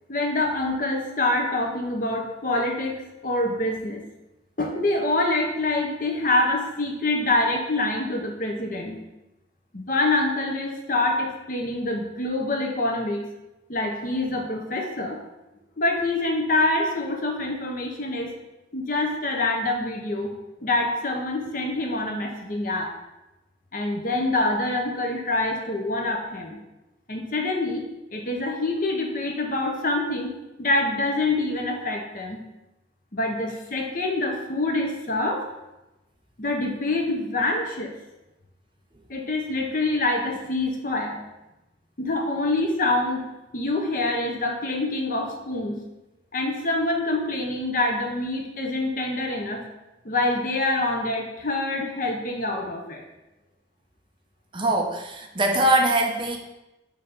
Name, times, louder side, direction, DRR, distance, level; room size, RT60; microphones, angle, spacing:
voice 1, 0.1-4.0 4.6-9.0 9.7-13.2 13.7-15.2 15.8-18.3 18.7-20.3 20.6-22.9 23.7-26.6 27.1-30.3 30.6-32.4 33.1-35.5 36.4-37.9 39.1-41.2 42.0-43.3 43.5-45.8 46.3-49.6 50.0-53.0, left 2 dB, 50° left, 2 dB, 0.9 m, -26 dB
voice 2, 54.5-56.4, right 1 dB, 30° right, 1 dB, 0.7 m, -22 dB
6.8 x 3.0 x 5.3 m, 0.97 s
head